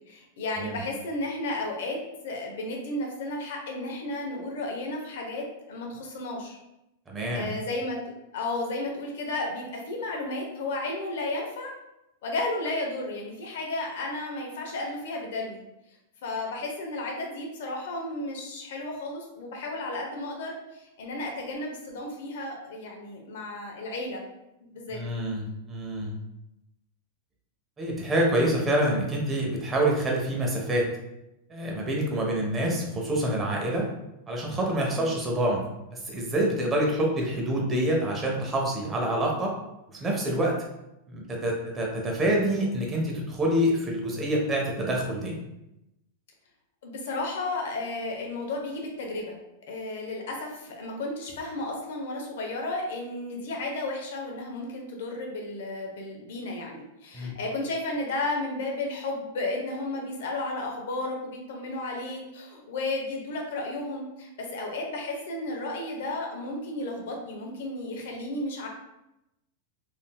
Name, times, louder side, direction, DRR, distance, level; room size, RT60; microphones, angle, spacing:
voice 1, 0.1-6.6 7.3-8.0 8.3-11.7 12.2-15.6 16.2-24.2 24.6-25.0 32.1-32.3 34.9-35.1 46.8-49.4 49.7-68.7, left 2 dB, 75° left, 0 dB, 0.8 m, -33 dB
voice 2, 7.1-7.5 24.9-26.1 27.8-30.9 31.5-33.9 34.3-35.6 35.9-39.5 39.9-40.5 41.1-45.4 57.1-57.3, right 1 dB, 15° right, -1 dB, 0.6 m, -26 dB
3.6 x 2.6 x 2.2 m, 0.90 s
supercardioid pair, 160°, 0 cm